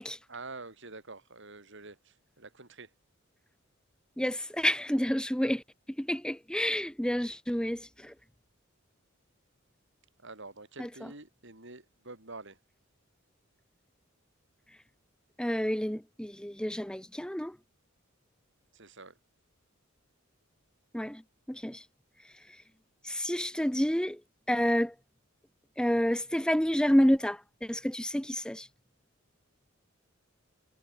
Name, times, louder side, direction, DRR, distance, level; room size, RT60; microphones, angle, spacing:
voice 1, 0.3-2.9 10.2-12.6 18.7-19.2, right 3 dB, 65° right, 6.4 m, -47 dB
voice 2, 4.2-5.6 6.0-8.1 10.8-10.9 15.4-17.6 20.9-21.2 21.5-21.8 23.0-24.2 24.5-24.9 25.8-28.7, equal, 5° left, 1.2 m, -29 dB
head